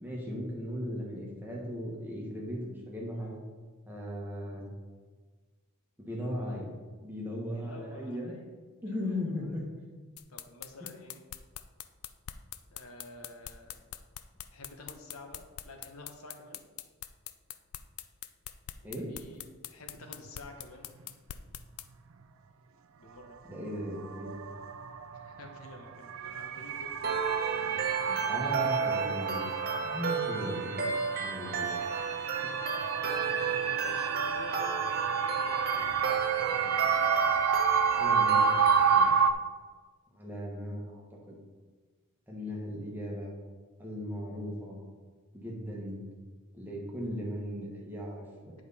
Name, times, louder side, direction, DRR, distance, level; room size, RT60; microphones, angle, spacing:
voice 1, 0.0-3.4 3.9-4.6 6.0-6.7 7.0-8.3 8.8-9.6 10.8-10.9 18.8-19.1 23.5-24.4 28.1-29.5 29.8-30.9 31.2-31.8 37.9-39.1 40.1-41.4 42.3-43.3 43.8-44.8 45.3-46.0 46.5-48.5, left 1 dB, 10° right, -3 dB, 1.4 m, -37 dB
voice 2, 7.5-8.5 8.8-9.3 10.3-11.2 12.7-13.8 14.5-16.6 18.8-20.9 23.0-23.4 25.1-27.1 27.4-27.5 28.0-29.1 33.7-36.1, left 2 dB, 70° left, 3 dB, 1.0 m, -49 dB
sound 1, 10.2-21.9, left 12 dB, 85° left, 0.4 m, -43 dB
sound 2, 20.3-20.4 23.5-23.6 24.0-39.3, right 6 dB, 65° right, 0.4 m, -30 dB
sound 3, 27.0-39.0, right 5 dB, 45° right, 1.0 m, -33 dB
9.2 x 5.1 x 4.2 m, 1.4 s
head